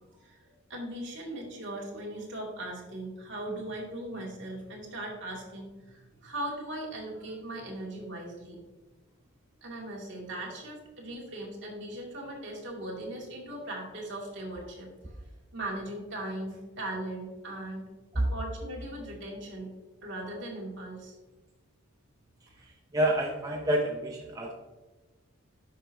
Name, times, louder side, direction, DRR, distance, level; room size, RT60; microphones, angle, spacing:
voice 1, 0.2-8.6 9.6-15.2 15.5-17.9 18.1-19.7 20.0-21.1, right 1 dB, 55° right, -2 dB, 2.3 m, -39 dB
voice 2, 22.6-24.5, right 1 dB, 15° right, 0 dB, 0.5 m, -28 dB
10.0 x 6.1 x 2.7 m, 1.2 s
head